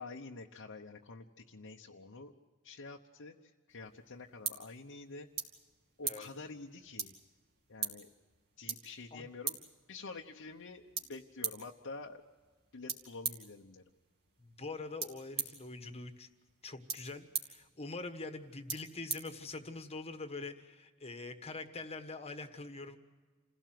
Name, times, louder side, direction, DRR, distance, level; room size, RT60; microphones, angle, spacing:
voice 1, 0.0-2.3 2.6-5.3 6.0-7.1 7.7-8.1 8.6-9.6 9.9-12.2 12.7-13.8, left 3 dB, 60° left, 0 dB, 1.0 m, -48 dB
sound 1, 3.7-20.0, right 5 dB, 50° right, 2.6 m, -44 dB
voice 2, 14.4-16.3 16.6-23.0, left 3 dB, 30° left, 8 dB, 1.4 m, -44 dB
28.0 x 16.5 x 7.7 m, 1.4 s
head